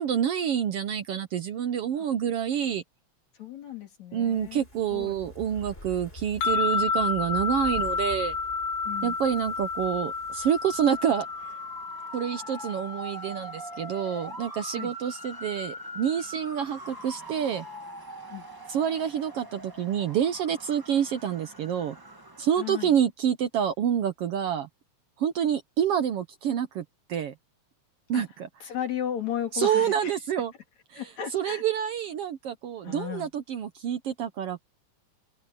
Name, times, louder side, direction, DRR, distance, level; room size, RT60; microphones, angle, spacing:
voice 1, 0.0-2.8 4.1-8.3 9.0-11.3 12.1-17.6 18.7-22.0 22.4-24.7 25.2-27.3 28.1-28.5 29.5-30.5 30.9-34.6, right 9 dB, 65° right, 1.6 m, -28 dB
voice 2, 3.4-4.6 4.9-5.2 8.8-9.2 14.8-14.9 18.3-18.5 22.6-22.9 28.1-28.2 28.6-30.1 30.9-31.6 32.8-33.3, left 10 dB, 65° left, 4.4 m, -34 dB
Fire, 4.1-11.5 11.8-11.9, left 1 dB, 20° left, 4.6 m, -47 dB
sound 1, 6.4-15.7, left 4 dB, 85° left, 2.8 m, -32 dB
Motor vehicle (road) / Siren, 10.2-22.9, right 1 dB, 25° right, 0.5 m, -43 dB
open air
omnidirectional pair, 3.4 m